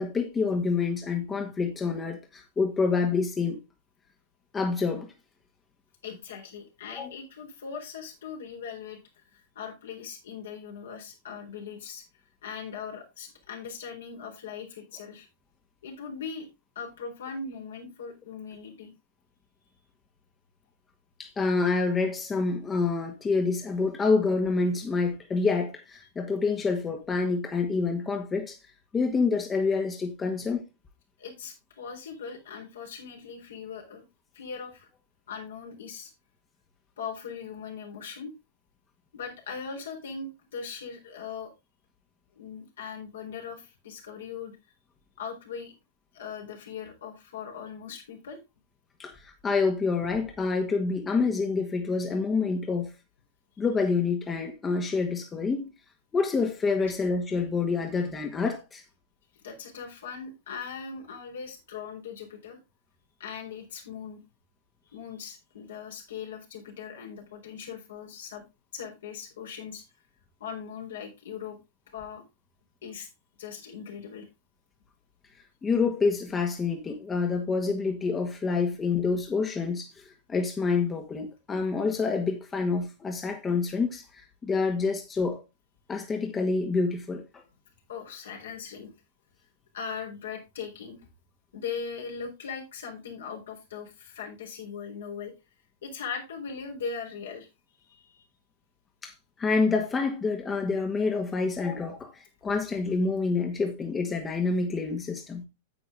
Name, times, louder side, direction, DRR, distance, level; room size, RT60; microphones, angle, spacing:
voice 1, 0.0-3.6 4.5-5.1 6.9-7.1 21.2-28.6 28.9-30.6 49.0-52.9 53.6-55.7 56.1-58.8 75.6-85.4 85.9-87.2 99.0-99.1 99.4-105.5, left 4 dB, 20° left, 1.8 m, -27 dB
voice 2, 6.0-12.0 12.4-15.3 15.8-16.5 16.8-18.9 31.2-34.0 34.3-34.9 35.3-36.1 37.0-38.3 39.1-41.5 42.3-44.6 45.2-45.7 46.1-48.4 59.4-62.6 63.2-64.2 64.9-68.4 68.7-69.8 70.4-71.6 71.9-72.2 72.8-73.1 73.4-74.3 87.9-88.9 89.7-91.0 91.5-95.3 95.8-97.5 97.9-98.2, left 6 dB, 70° left, 3.9 m, -39 dB
9.7 x 8.3 x 3.6 m
figure-of-eight pair, 100°, 0 cm